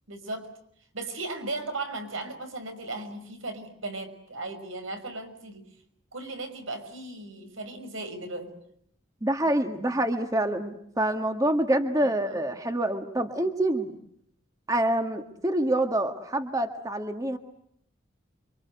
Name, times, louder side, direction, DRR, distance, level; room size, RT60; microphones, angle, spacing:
voice 1, 0.1-0.5 0.9-5.7 6.1-8.5 12.0-12.4, right 2 dB, 85° right, 7 dB, 6.0 m, -36 dB
voice 2, 9.2-14.0 14.7-17.4, right 1 dB, 15° right, 6 dB, 1.7 m, -26 dB
29.0 x 25.0 x 8.1 m, 0.70 s
head